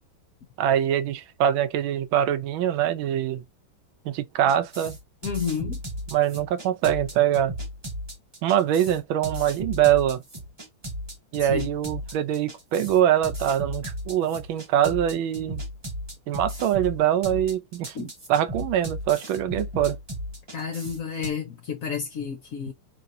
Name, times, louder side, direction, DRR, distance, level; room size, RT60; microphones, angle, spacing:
voice 1, 0.6-3.4 4.0-5.0 6.1-7.6 8.4-10.2 11.3-15.6 16.3-20.0, right 10 dB, 75° right, 1.4 m, -23 dB
sound 1, 4.5-21.3, equal, 20° right, 0.7 m, -35 dB
voice 2, 5.2-5.8 11.4-11.7 17.9-18.1 20.5-22.7, left 6 dB, 55° left, 0.9 m, -31 dB
5.6 x 3.3 x 2.7 m
omnidirectional pair, 2.3 m